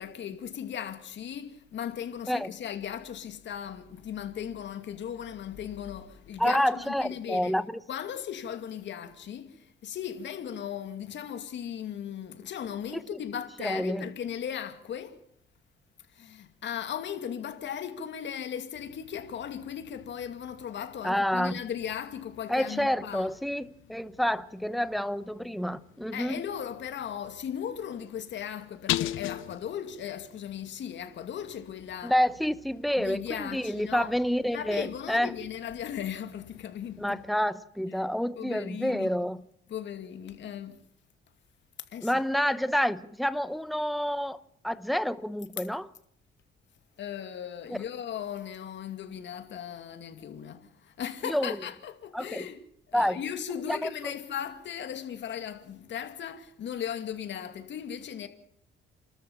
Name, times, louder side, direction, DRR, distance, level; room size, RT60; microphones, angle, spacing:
voice 1, 0.0-7.5 7.9-15.2 16.1-23.3 26.1-32.1 33.0-34.1 34.5-37.2 38.4-39.1 39.7-40.8 41.9-42.2 47.0-52.6 52.9-58.3, left 9 dB, 65° left, 2.4 m, -37 dB
voice 2, 6.4-7.8 12.9-13.2 13.6-14.1 21.0-21.6 22.5-26.4 32.0-35.3 37.0-39.4 42.0-45.9 47.7-47.8 51.2-51.6 52.1-52.5 52.9-53.2 53.7-54.1, equal, ahead, 1.0 m, -28 dB
sound 1, 18.7-37.3, left 14 dB, 80° left, 0.8 m, -43 dB
29.0 x 13.0 x 7.2 m
cardioid pair, 90°, 20 cm